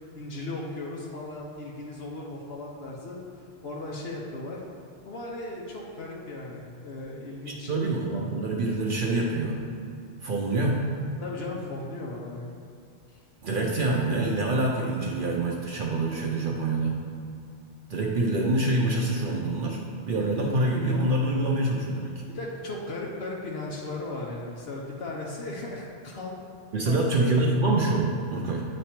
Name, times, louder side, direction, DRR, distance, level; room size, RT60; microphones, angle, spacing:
voice 1, 0.1-3.2 3.6-4.6 5.0-7.7 11.2-12.5 13.1-13.2 22.3-26.4 26.8-27.2, left 2 dB, 75° left, -3 dB, 1.0 m, -36 dB
voice 2, 7.7-9.6 10.2-10.8 13.4-17.0 17.9-22.2 26.7-28.6, right 2 dB, 60° right, -2 dB, 0.8 m, -26 dB
8.9 x 3.2 x 4.3 m, 2.4 s
omnidirectional pair, 1.1 m